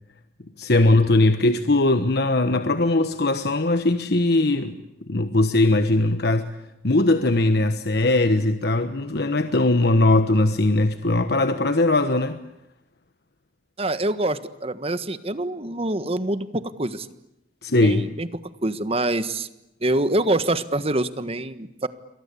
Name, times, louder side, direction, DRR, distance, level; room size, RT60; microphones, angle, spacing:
voice 1, 0.6-4.8 5.1-6.5 6.8-12.4 17.6-18.1, left 2 dB, 65° left, 9 dB, 1.3 m, -20 dB
voice 2, 13.8-17.1 17.8-18.3 18.6-19.5 19.8-21.9, right 1 dB, 35° right, 12 dB, 1.5 m, -25 dB
29.5 x 24.0 x 8.5 m, 0.88 s
head